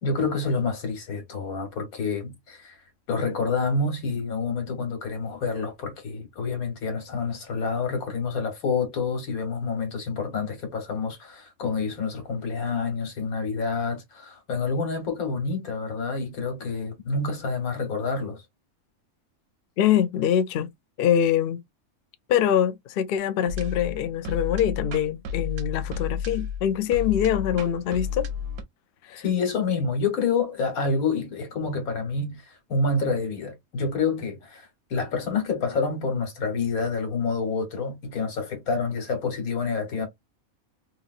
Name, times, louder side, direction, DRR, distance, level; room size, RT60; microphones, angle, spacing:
voice 1, 0.0-2.8 3.1-18.4 29.2-40.1, left 4 dB, 90° left, 1.6 m, -28 dB
voice 2, 19.8-20.7 21.0-21.6 22.3-28.3 29.1-29.2, left 9 dB, 70° left, 0.5 m, -24 dB
sound 1, 23.5-28.6, left 6 dB, 85° right, 1.1 m, -32 dB
3.1 x 2.8 x 2.4 m
omnidirectional pair, 1.5 m